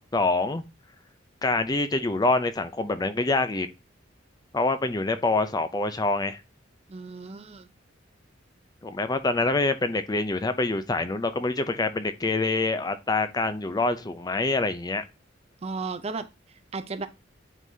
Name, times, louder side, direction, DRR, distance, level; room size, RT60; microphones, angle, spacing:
voice 1, 0.1-0.6 1.4-3.7 4.5-6.4 8.8-15.0, left 3 dB, 20° left, 0.5 m, -26 dB
voice 2, 6.9-7.7 15.6-17.1, right 4 dB, 35° right, 0.5 m, -35 dB
9.0 x 3.8 x 2.7 m
head